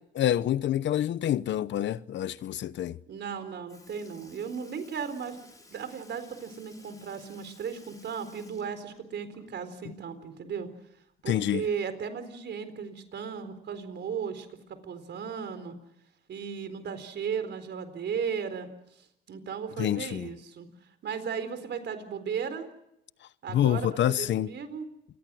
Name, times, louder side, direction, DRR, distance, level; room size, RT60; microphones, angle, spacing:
voice 1, 0.1-3.0 11.3-11.6 19.8-20.3 23.5-24.5, left 11 dB, 65° left, 0.9 m, -27 dB
voice 2, 3.1-5.4 5.7-10.7 11.2-15.8 16.3-18.7 19.3-20.7 21.0-22.7 23.4-24.9, right 6 dB, 60° right, 4.2 m, -36 dB
Sink (filling or washing) / Liquid, 3.2-3.4 3.7-9.8 10.1-10.2 11.8-11.9 12.8-12.9 13.7-13.9 14.8-14.9, left 2 dB, 15° left, 5.5 m, -56 dB
28.5 x 21.0 x 6.3 m
cardioid pair, 90°, 20 cm